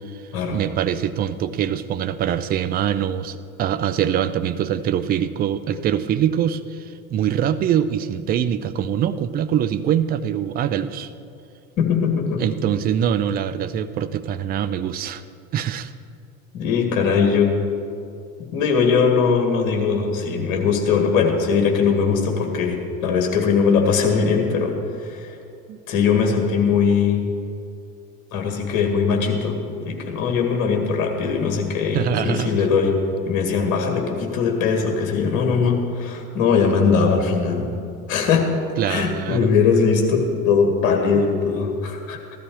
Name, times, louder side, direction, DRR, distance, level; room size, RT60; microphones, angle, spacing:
voice 1, 0.5-11.1 12.4-15.2 15.5-15.9 25.7-25.8 31.9-32.6 38.8-39.5, right 9 dB, 25° right, 12 dB, 0.5 m, -23 dB
voice 2, 11.8-12.4 16.5-17.5 18.5-25.3 25.9-27.2 28.3-33.0 33.3-37.7 38.1-38.5 38.9-42.2, left 5 dB, 45° left, 3 dB, 2.0 m, -20 dB
15.0 x 12.5 x 4.7 m, 2.5 s
figure-of-eight pair, 70°, 41 cm